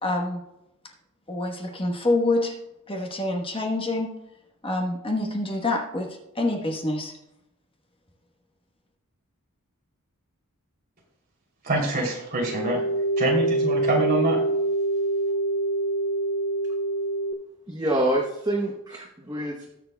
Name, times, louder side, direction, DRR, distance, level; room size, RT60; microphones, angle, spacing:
voice 1, 0.0-0.4 1.3-2.5 2.9-4.1 4.6-6.1 6.3-7.1, left 2 dB, 25° left, 1 dB, 1.1 m, -26 dB
voice 2, 11.6-12.8 13.2-14.4, right 2 dB, 45° right, -2 dB, 3.0 m, -25 dB
sound 1, 12.4-17.3, right 2 dB, 70° left, 0.6 m, -25 dB
voice 3, 17.7-19.7, right 1 dB, 15° right, 1 dB, 0.9 m, -26 dB
20.0 x 6.8 x 2.3 m, 0.87 s
head